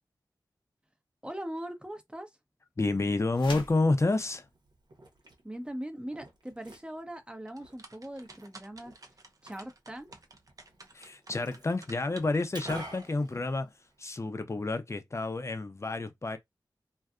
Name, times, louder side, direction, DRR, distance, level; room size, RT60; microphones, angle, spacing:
voice 1, 1.2-2.3 5.4-8.9 9.4-10.1, right 1 dB, 10° right, 0.7 m, -40 dB
voice 2, 2.8-4.4 10.9-13.7 14.0-16.4, left 2 dB, 35° left, 0.6 m, -29 dB
Liquid, 3.2-14.2, right 1 dB, 60° right, 1.0 m, -51 dB
sound 1, 3.3-3.9, left 3 dB, 90° left, 0.6 m, -41 dB
sound 2, 7.5-13.3, right 2 dB, 45° right, 0.6 m, -52 dB
2.6 x 2.4 x 2.3 m
cardioid pair, 45°, 8 cm